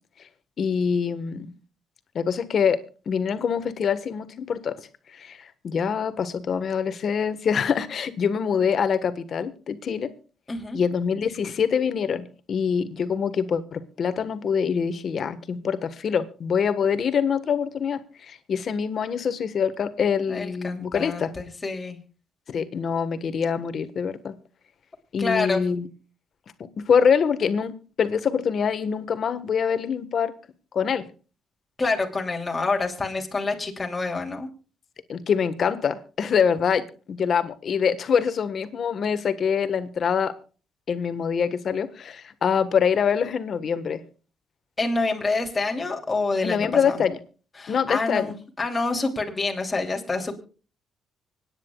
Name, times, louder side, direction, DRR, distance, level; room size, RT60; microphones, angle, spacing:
voice 1, 0.6-1.5 2.1-4.8 5.1-10.1 10.7-21.3 22.5-24.4 25.1-25.9 26.6-30.3 30.7-31.1 35.1-40.4 40.9-44.0 46.4-47.2 47.7-48.3, left 7 dB, 55° left, 11 dB, 1.4 m, -25 dB
voice 2, 10.5-10.8 20.3-22.0 25.2-25.8 31.8-34.5 44.8-47.0 47.6-50.4, left 3 dB, 20° left, 1 dB, 3.0 m, -27 dB
25.5 x 9.8 x 2.4 m, 0.36 s
cardioid pair, 90°, 0 cm